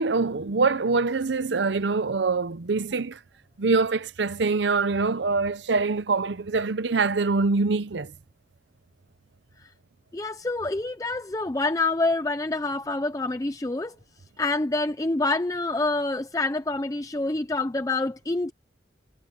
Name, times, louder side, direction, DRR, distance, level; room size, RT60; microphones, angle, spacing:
voice 1, 0.0-3.2 3.6-8.1, right 4 dB, 85° right, 0.7 m, -24 dB
voice 2, 10.1-14.0 14.4-18.5, left 2 dB, 20° left, 0.5 m, -27 dB
head